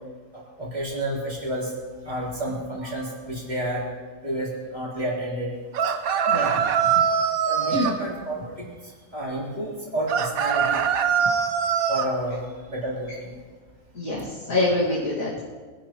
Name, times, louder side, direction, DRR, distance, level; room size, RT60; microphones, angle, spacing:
voice 1, 0.3-1.7 2.0-3.8 4.2-5.5 6.3-6.9 7.5-10.8 11.9-13.3, right 1 dB, 30° right, -6 dB, 3.8 m, -30 dB
sound 1, 5.7-8.0 10.1-12.1, right 7 dB, 80° right, 1.3 m, -22 dB
voice 2, 6.3-6.6 7.7-8.0 13.9-15.4, left 1 dB, 75° left, -6 dB, 2.5 m, -25 dB
23.5 x 11.5 x 3.0 m, 1.5 s
omnidirectional pair, 1.5 m